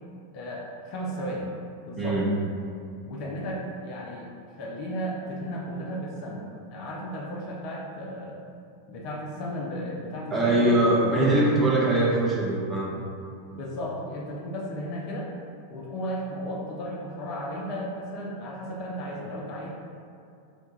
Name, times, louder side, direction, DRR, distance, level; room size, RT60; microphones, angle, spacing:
voice 1, 0.3-1.5 1.8-2.2 3.1-4.3 4.6-8.4 8.9-10.7 11.1-11.5 13.5-15.3 15.7-19.7, equal, 40° left, -3 dB, 0.4 m, -34 dB
voice 2, 2.0-2.3 10.3-12.9, right 1 dB, 15° right, -6 dB, 0.6 m, -22 dB
2.7 x 2.2 x 3.0 m, 2.4 s
figure-of-eight pair, 90°, 0 cm